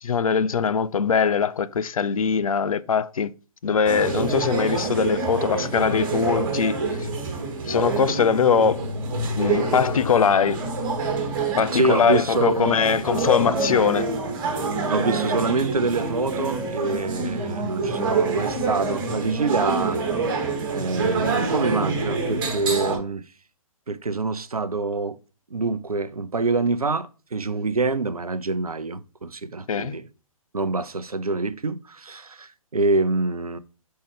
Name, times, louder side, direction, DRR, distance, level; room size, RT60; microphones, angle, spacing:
voice 1, 0.0-3.3 3.6-7.1 7.6-8.9 9.3-10.6 11.6-14.1 29.7-29.9, left 6 dB, 70° left, 0.4 m, -22 dB
sound 1, 3.8-23.0, right 3 dB, 40° right, 1.7 m, -26 dB
voice 2, 11.7-12.8 14.9-20.0 20.7-23.2 23.9-25.2 25.5-30.1 30.5-33.6, right 3 dB, 85° right, 0.6 m, -26 dB
6.7 x 4.4 x 3.4 m
figure-of-eight pair, 125°, 18 cm